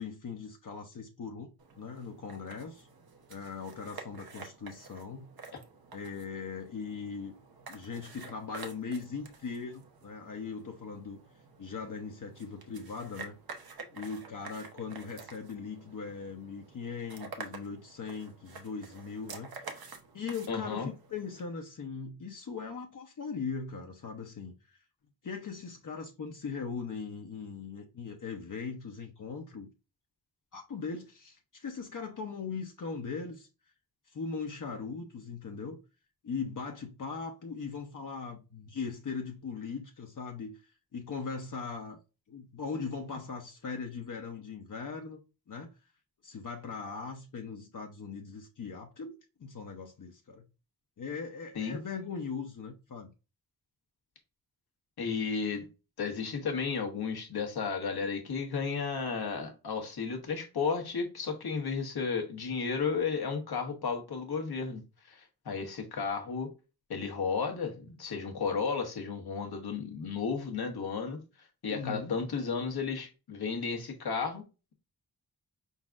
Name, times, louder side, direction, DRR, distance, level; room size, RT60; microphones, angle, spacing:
voice 1, 0.0-1.5 1.8-2.9 3.3-5.3 5.9-7.3 7.7-11.2 11.6-13.4 13.9-19.8 20.1-24.8 25.2-29.7 30.5-33.5 34.1-35.8 36.2-40.6 40.9-42.0 42.3-45.2 45.5-45.7 46.2-49.1 49.4-50.4 51.0-53.1 71.7-72.1, left 5 dB, 55° left, 0.7 m, -39 dB
sound 1, 1.6-21.4, right 4 dB, 70° right, 0.9 m, -49 dB
voice 2, 20.5-20.9 51.5-51.8 55.0-55.7 56.0-64.8 65.1-66.5 66.9-74.4, left 5 dB, 85° left, 1.2 m, -33 dB
5.0 x 4.0 x 2.4 m
wide cardioid pair, 90°, 37 cm